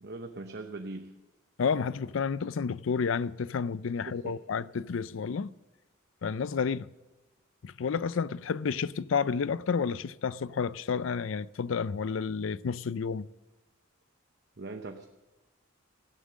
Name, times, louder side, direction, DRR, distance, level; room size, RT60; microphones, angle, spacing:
voice 1, 0.0-1.2 4.0-4.4 14.6-15.1, right 2 dB, 55° right, 0.9 m, -40 dB
voice 2, 1.6-5.5 6.2-6.9 7.6-13.3, left 5 dB, 70° left, 0.4 m, -30 dB
16.5 x 11.0 x 6.3 m
head